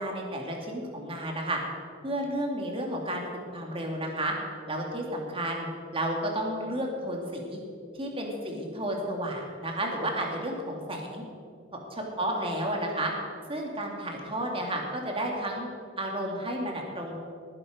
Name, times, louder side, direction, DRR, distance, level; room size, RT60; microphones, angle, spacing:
voice 1, 0.0-1.6 2.0-4.3 4.7-7.6 7.9-11.2 11.9-13.1 13.5-15.7 16.0-17.2, right 1 dB, 30° right, 0 dB, 2.5 m, -32 dB
19.5 x 9.9 x 5.1 m, 2.3 s
head